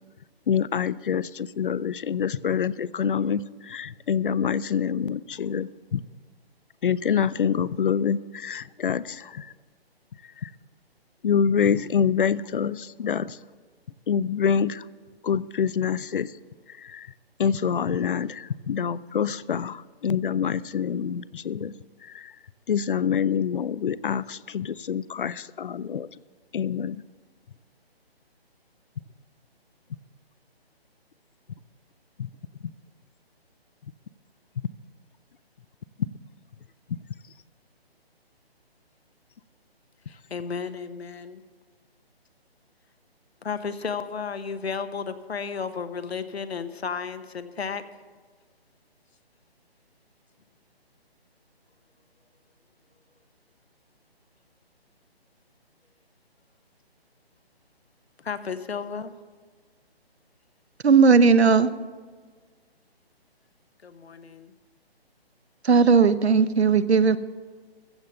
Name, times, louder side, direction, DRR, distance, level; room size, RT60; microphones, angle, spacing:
voice 1, 0.5-6.0 6.8-9.5 10.4-10.5 11.2-13.4 14.1-14.9 15.2-16.4 16.7-17.1 17.4-21.7 22.0-22.3 22.7-26.1 26.5-27.0 32.2-32.3, left 7 dB, 55° left, 0.5 m, -26 dB
voice 2, 40.1-41.4 43.4-47.8 58.2-59.1 63.8-64.5, left 6 dB, 80° left, 1.1 m, -33 dB
voice 3, 60.8-61.7 65.6-67.2, right 5 dB, 90° right, 0.9 m, -17 dB
15.0 x 7.3 x 6.8 m
hypercardioid pair, 160°, 31 cm